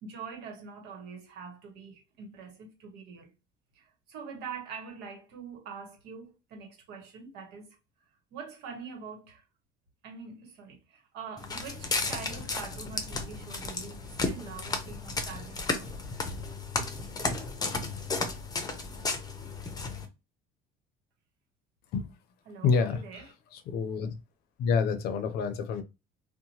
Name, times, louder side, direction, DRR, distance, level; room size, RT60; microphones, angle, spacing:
voice 1, 0.0-3.3 3.7-7.8 8.3-9.4 10.0-16.0 22.5-23.3, right 5 dB, 75° right, 1.1 m, -44 dB
Walk footsteps, 11.4-20.1, left 3 dB, 20° left, 0.6 m, -34 dB
voice 2, 22.6-23.2 23.5-24.2 24.6-25.8, left 5 dB, 65° left, 0.6 m, -28 dB
2.8 x 2.1 x 2.8 m
cardioid pair, 105°, 17 cm